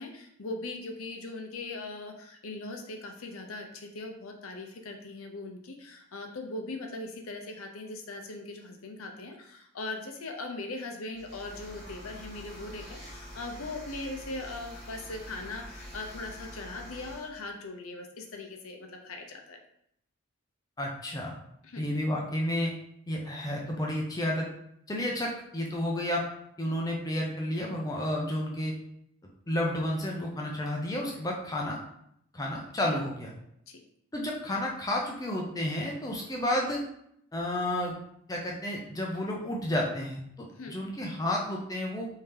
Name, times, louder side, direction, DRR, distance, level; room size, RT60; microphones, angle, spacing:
voice 1, 0.0-19.6 21.6-21.8 33.7-33.8 40.5-40.7, left 2 dB, 80° left, 4 dB, 0.6 m, -40 dB
sound 1, 11.1-17.3, equal, 30° right, 0.8 m, -46 dB
voice 2, 20.8-21.3 21.8-22.7 23.1-24.5 24.9-26.2 26.6-28.7 29.5-31.8 32.3-33.3 34.1-36.8 37.3-38.0 38.3-40.2 40.7-42.1, left 1 dB, 15° left, -1 dB, 0.4 m, -31 dB
3.4 x 2.7 x 3.3 m, 0.73 s
head